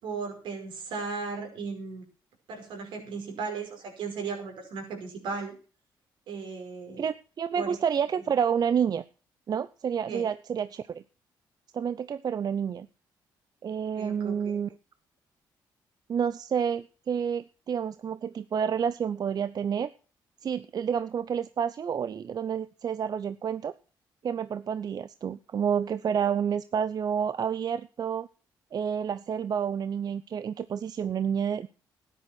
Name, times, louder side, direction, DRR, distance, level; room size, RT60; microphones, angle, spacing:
voice 1, 0.0-2.1 2.5-5.6 6.3-7.0 7.5-7.8 10.1-10.2 14.0-14.5, right 4 dB, 80° right, 3 dB, 5.5 m, -36 dB
voice 2, 7.0-9.0 9.5-11.0 11.7-12.9 13.6-14.7 16.1-19.9 20.4-23.7 24.2-28.3 28.7-31.7, right 7 dB, 55° right, 14 dB, 0.7 m, -29 dB
13.0 x 10.0 x 6.1 m, 0.37 s
cardioid pair, 75°, 8 cm